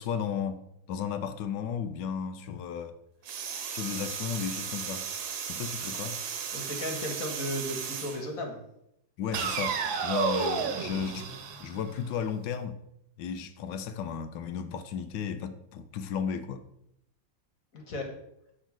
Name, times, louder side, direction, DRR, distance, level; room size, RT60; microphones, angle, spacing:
voice 1, 0.0-3.0 3.7-5.1 5.5-6.2 9.2-11.3 11.6-12.8 13.2-16.7, left 7 dB, 75° left, 1.3 m, -34 dB
sound 1, 3.3-8.2 9.3-12.3, right 7 dB, 85° right, 1.7 m, -34 dB
voice 2, 6.5-8.6 17.7-18.1, left 1 dB, 50° left, 1.7 m, -35 dB
9.8 x 3.6 x 6.1 m
omnidirectional pair, 2.1 m